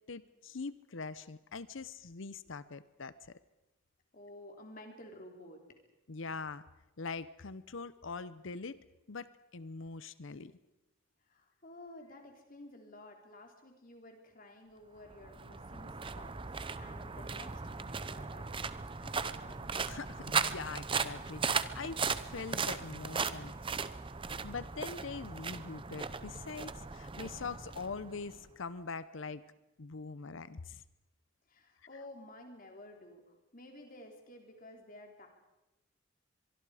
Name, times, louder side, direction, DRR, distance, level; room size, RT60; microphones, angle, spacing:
voice 1, 0.1-3.3 6.1-6.6 7.0-8.8 9.1-10.5 19.9-22.0 22.3-23.5 24.4-29.4 29.8-30.8, left 4 dB, 70° left, 15 dB, 0.8 m, -43 dB
voice 2, 4.1-5.6 11.3-16.4 16.8-19.6 31.5-35.3, left 1 dB, 45° left, 3 dB, 3.5 m, -53 dB
sound 1, 15.1-28.4, right 5 dB, 25° right, 0.7 m, -37 dB
24.0 x 23.5 x 5.0 m, 0.96 s
head